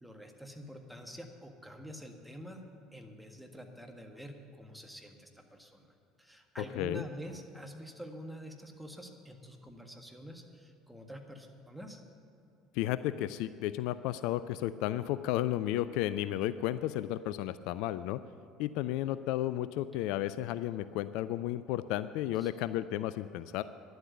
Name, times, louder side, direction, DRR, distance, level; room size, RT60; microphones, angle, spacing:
voice 1, 0.0-2.6 2.9-12.0 22.4-22.5, equal, ahead, 3 dB, 1.7 m, -47 dB
voice 2, 6.7-7.0 12.7-18.2 18.6-23.6, left 13 dB, 65° left, 14 dB, 0.3 m, -33 dB
11.0 x 7.9 x 9.6 m, 2.7 s
hypercardioid pair, 65°, 0 cm